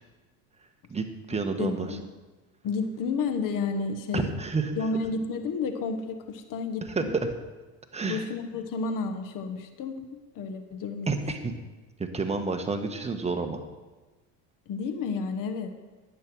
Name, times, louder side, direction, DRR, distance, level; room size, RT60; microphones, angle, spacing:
voice 1, 0.9-1.9 4.1-4.8 6.8-7.2 7.9-8.3 11.1-11.5 12.0-13.6, right 4 dB, 15° right, 5 dB, 1.3 m, -29 dB
voice 2, 1.6-2.0 2.6-4.3 4.8-7.1 8.1-11.2 14.7-15.7, left 4 dB, 55° left, 7 dB, 1.4 m, -31 dB
10.5 x 8.3 x 6.2 m, 1.2 s
supercardioid pair, 105°, 39 cm